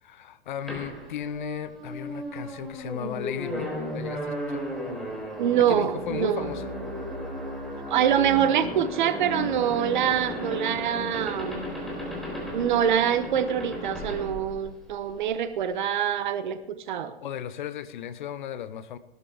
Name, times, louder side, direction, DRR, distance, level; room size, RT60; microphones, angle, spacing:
voice 1, 0.0-4.7 5.7-6.6 17.2-19.0, left 10 dB, 55° left, 14 dB, 0.9 m, -36 dB
sound 1, 0.7-15.2, equal, ahead, 3.5 m, -35 dB
voice 2, 5.4-6.5 7.9-11.7 12.5-17.1, right 9 dB, 50° right, 11 dB, 1.2 m, -25 dB
17.0 x 12.5 x 3.4 m, 0.88 s
figure-of-eight pair, 110°, 30 cm